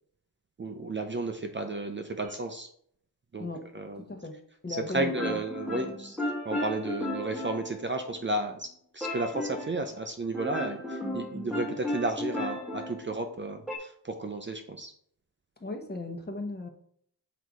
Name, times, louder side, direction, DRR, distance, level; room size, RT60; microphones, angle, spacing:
voice 1, 0.6-2.7 3.3-3.5 3.7-4.0 4.9-6.2 6.4-8.7 8.9-14.9, right 2 dB, 30° right, 5 dB, 0.6 m, -33 dB
sound 1, 2.2-2.3 5.0-8.3 9.0-9.8 10.3-13.8, left 1 dB, ahead, 1.5 m, -35 dB
voice 2, 4.0-4.3 4.6-5.4 15.6-16.7, left 2 dB, 25° left, 4 dB, 1.1 m, -36 dB
6.3 x 4.0 x 4.7 m, 0.65 s
wide cardioid pair, 135°, 39 cm